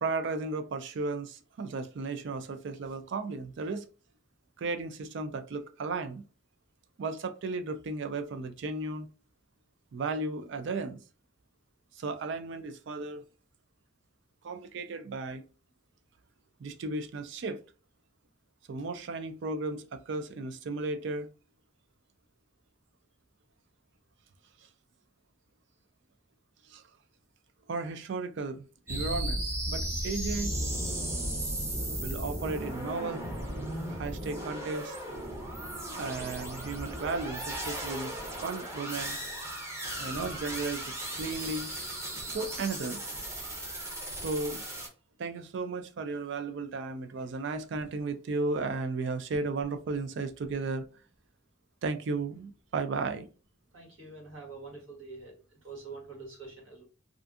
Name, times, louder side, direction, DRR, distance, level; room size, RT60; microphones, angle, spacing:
voice 1, 0.0-3.9 4.6-6.3 7.0-9.1 9.9-11.0 12.0-13.2 14.4-15.4 16.6-17.6 18.7-21.3 26.7-26.8 27.7-30.6 32.0-33.3 33.9-35.0 35.9-39.2 40.0-41.7 42.3-43.0 44.1-44.6 45.2-50.9 51.8-53.3, right 3 dB, 65° right, 0.4 m, -35 dB
sound 1, 28.9-44.9, right 1 dB, 15° right, 0.6 m, -36 dB
voice 2, 53.7-55.4 55.6-56.8, right 3 dB, 85° right, 1.4 m, -45 dB
2.5 x 2.5 x 2.3 m
head